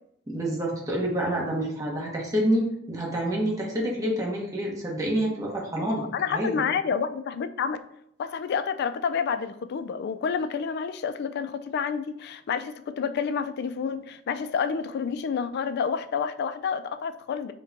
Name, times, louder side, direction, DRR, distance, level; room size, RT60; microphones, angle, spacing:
voice 1, 0.3-6.6, right 1 dB, 15° right, -3 dB, 1.0 m, -28 dB
voice 2, 5.8-7.8 8.2-17.5, left 6 dB, 55° left, 11 dB, 0.3 m, -29 dB
5.2 x 2.2 x 3.9 m, 0.72 s
head